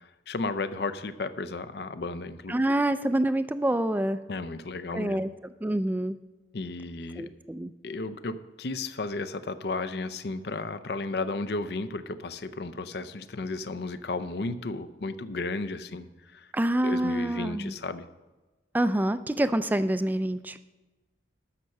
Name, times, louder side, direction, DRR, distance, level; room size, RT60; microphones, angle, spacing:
voice 1, 0.0-2.6 4.3-5.2 6.5-7.3 7.8-16.1 16.3-16.5 16.8-18.1, left 3 dB, 60° left, 13 dB, 0.6 m, -34 dB
voice 2, 2.5-4.2 4.9-5.3 5.6-6.2 7.2-7.7 16.5-17.7 18.7-20.6, right 1 dB, 10° right, 12 dB, 0.3 m, -26 dB
12.5 x 5.7 x 6.5 m, 1.2 s
head